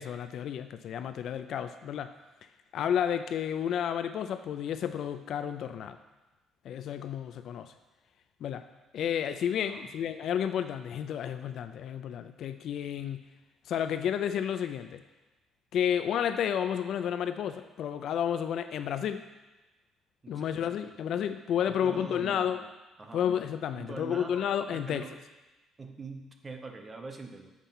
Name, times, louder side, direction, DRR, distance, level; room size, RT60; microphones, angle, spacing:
voice 1, 0.0-2.1 2.7-6.0 6.6-7.7 8.4-8.6 8.9-13.3 13.7-15.0 15.7-19.3 20.3-22.6 23.1-25.1, left 9 dB, 50° left, 10 dB, 0.3 m, -31 dB
voice 2, 20.2-20.6 21.6-22.7 23.0-23.3 23.8-25.2 25.8-27.5, right 3 dB, 20° right, 4 dB, 0.6 m, -43 dB
7.4 x 4.3 x 5.4 m, 1.1 s
cardioid pair, 175°, 0 cm